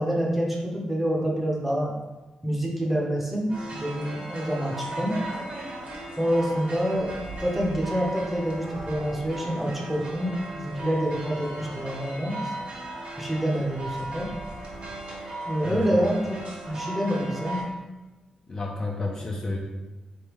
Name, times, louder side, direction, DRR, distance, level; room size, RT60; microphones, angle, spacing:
voice 1, 0.0-1.9 2.4-5.2 6.2-7.1 7.4-12.5 13.2-14.3 15.5-16.4 16.7-17.6, equal, 5° right, -2 dB, 0.6 m, -27 dB
sound 1, 3.5-17.6, right 2 dB, 60° right, 1.1 m, -37 dB
voice 2, 18.5-19.6, left 2 dB, 30° left, 0 dB, 0.4 m, -30 dB
4.3 x 3.4 x 3.0 m, 1.2 s
wide cardioid pair, 165°, 2 cm